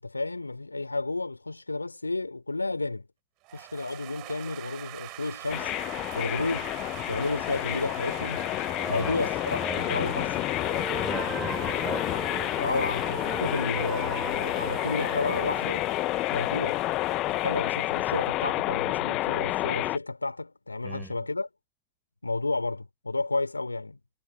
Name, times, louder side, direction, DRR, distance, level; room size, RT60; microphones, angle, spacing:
voice 1, 0.0-3.1 3.5-5.7 6.1-6.7 7.1-8.4 8.9-10.3 12.6-15.9 16.3-16.8 17.3-21.5 22.2-24.0, left 3 dB, 85° left, 3.8 m, -31 dB
sound 1, 3.4-19.0, right 25 dB, 55° right, 7.2 m, -44 dB
sound 2, 5.5-20.0, left 18 dB, 50° left, 1.2 m, -29 dB
voice 2, 8.7-10.5 11.0-12.4 20.8-21.2, right 2 dB, 10° right, 7.1 m, -39 dB
sound 3, 10.5-16.7, right 10 dB, 40° right, 4.4 m, -40 dB
figure-of-eight pair, 65°, 0 cm